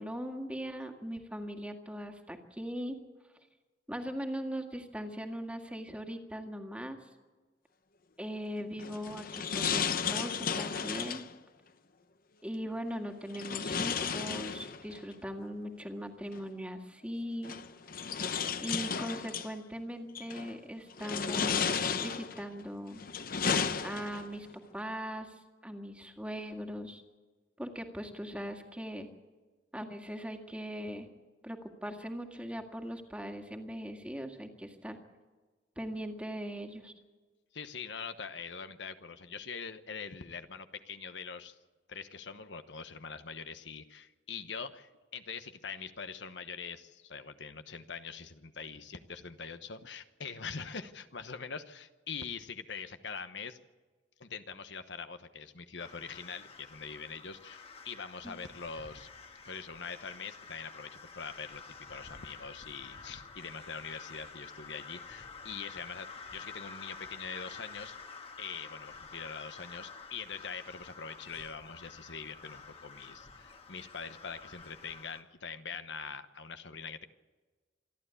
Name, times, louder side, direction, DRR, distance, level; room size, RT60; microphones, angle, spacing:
voice 1, 0.0-3.0 3.9-7.0 8.2-11.3 12.4-17.6 18.0-18.1 18.6-23.0 23.8-24.5 24.7-25.3 25.6-27.0 27.6-29.1 29.7-31.1 31.4-35.0 35.8-36.9 58.2-58.3, equal, 5° right, 4 dB, 1.9 m, -40 dB
sound 1, 8.8-11.3 13.3-15.0 16.3-16.4 17.4-19.5 20.1-20.5 21.0-22.4 22.9-24.4, left 6 dB, 50° left, 0.9 m, -33 dB
voice 2, 37.5-41.6 41.9-53.6 54.2-59.1 59.4-60.9 61.1-61.6 61.9-66.1 66.3-67.9 68.4-77.1, left 5 dB, 75° left, 9 dB, 1.1 m, -43 dB
sound 2, 55.8-75.2, left 4 dB, 35° left, 1.5 m, -49 dB
27.0 x 11.5 x 8.3 m, 1.3 s
head